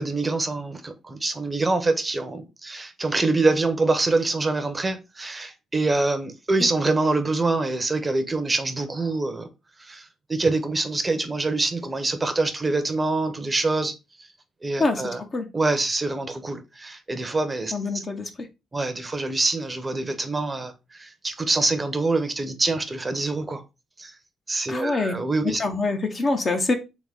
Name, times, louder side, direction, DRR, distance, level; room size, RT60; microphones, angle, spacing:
voice 1, 0.0-9.5 9.8-13.9 14.6-15.2 15.5-18.0 18.7-23.6 24.0-24.1 24.5-25.6, right 3 dB, 20° right, 0.7 m, -25 dB
voice 2, 14.8-15.5 17.7-18.5 24.7-25.2 25.4-26.7, left 3 dB, 35° left, 0.8 m, -25 dB
3.6 x 3.6 x 3.5 m
cardioid pair, 90°, 0 cm